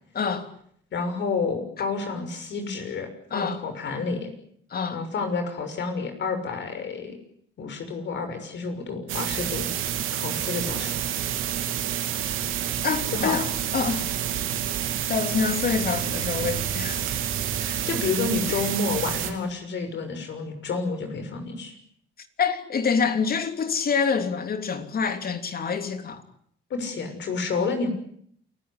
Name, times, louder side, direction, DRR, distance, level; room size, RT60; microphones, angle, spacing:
voice 1, 0.1-0.5 3.3-3.6 4.7-5.0 12.8-14.0 15.1-17.0 18.5-18.6 22.4-26.2, left 5 dB, 50° left, 3.2 m, -26 dB
voice 2, 0.9-4.3 4.9-7.2 7.6-9.7 10.1-11.0 12.1-12.3 13.1-13.4 17.0-21.8 26.7-27.9, left 4 dB, 65° left, 6.4 m, -30 dB
sound 1, 9.1-19.3, right 10 dB, 90° right, 3.0 m, -28 dB
28.5 x 15.5 x 9.8 m
cardioid pair, 90°, 20 cm